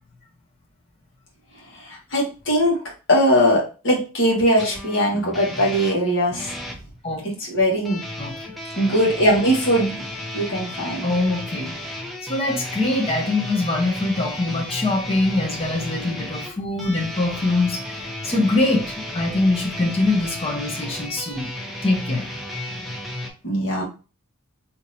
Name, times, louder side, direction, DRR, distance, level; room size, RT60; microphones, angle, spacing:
voice 1, 1.8-2.8 3.1-6.5 7.4-8.0 8.8-10.0 10.3-11.1 23.4-23.8, equal, 60° left, -2 dB, 1.4 m, -20 dB
sound 1, 4.6-6.8 7.8-23.3, left 1 dB, ahead, 0.5 m, -33 dB
voice 2, 11.0-11.8 12.2-17.8 18.2-21.5 21.8-22.2, left 2 dB, 25° left, 1 dB, 0.8 m, -23 dB
3.6 x 2.8 x 2.6 m, 0.33 s
head